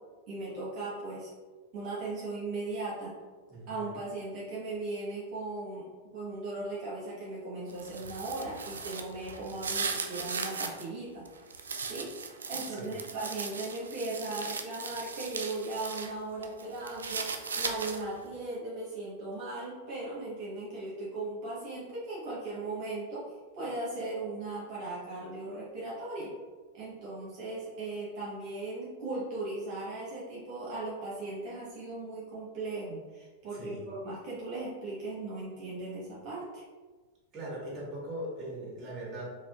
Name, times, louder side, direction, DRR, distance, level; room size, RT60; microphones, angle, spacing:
voice 1, 0.3-1.3 1.7-3.1 3.7-5.9 6.1-11.3 11.8-12.1 12.5-26.3 26.7-36.6, right 2 dB, 45° right, -7 dB, 1.3 m, -38 dB
voice 2, 3.5-4.0 12.7-13.0 33.5-33.9 37.3-39.3, right 1 dB, 25° right, -5 dB, 1.5 m, -40 dB
sound 1, 7.7-10.8 11.3-16.1 16.4-18.2, right 5 dB, 75° right, 0.4 m, -37 dB
4.3 x 2.9 x 2.4 m, 1.3 s
figure-of-eight pair, 95°, 0 cm